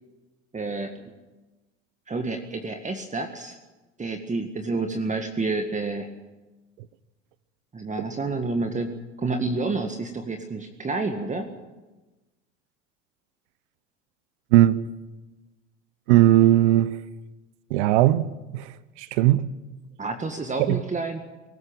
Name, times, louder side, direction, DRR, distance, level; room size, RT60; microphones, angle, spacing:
voice 1, 0.5-0.9 2.1-3.6 4.0-6.1 7.7-8.9 9.2-11.5 20.0-21.2, right 3 dB, 20° right, 1.9 m, -29 dB
voice 2, 16.1-17.0 17.7-19.5 20.6-20.8, right 14 dB, 70° right, 0.9 m, -19 dB
23.0 x 14.5 x 9.0 m
hypercardioid pair, 80°, 35 cm